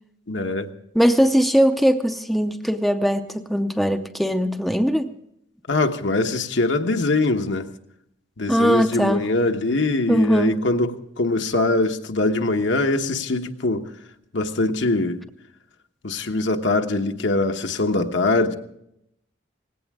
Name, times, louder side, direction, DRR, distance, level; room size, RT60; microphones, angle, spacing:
voice 1, 0.3-0.7 5.7-7.7 8.4-13.9 14.3-15.2 16.0-18.6, left 2 dB, 70° left, 1.1 m, -22 dB
voice 2, 0.9-5.1 8.5-9.3 10.1-10.6, equal, ahead, 0.6 m, -20 dB
19.0 x 16.5 x 3.6 m
head